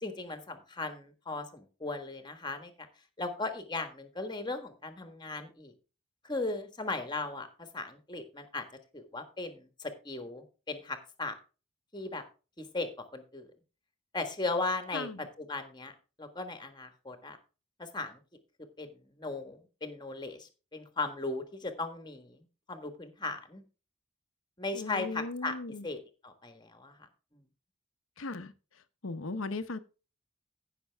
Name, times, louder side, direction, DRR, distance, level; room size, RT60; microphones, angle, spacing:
voice 1, 0.0-2.9 3.2-5.7 6.2-8.6 8.9-11.4 11.9-12.2 12.6-13.5 14.1-15.1 15.4-15.9 16.2-17.4 17.8-18.2 18.8-18.9 19.2-23.6 24.6-25.5 25.8-27.1 27.3-27.4, left 3 dB, 20° left, 1.4 m, -37 dB
voice 2, 14.9-15.2 24.7-25.8 28.2-28.5 29.0-29.8, left 3 dB, 70° left, 0.9 m, -37 dB
15.5 x 6.1 x 3.4 m
head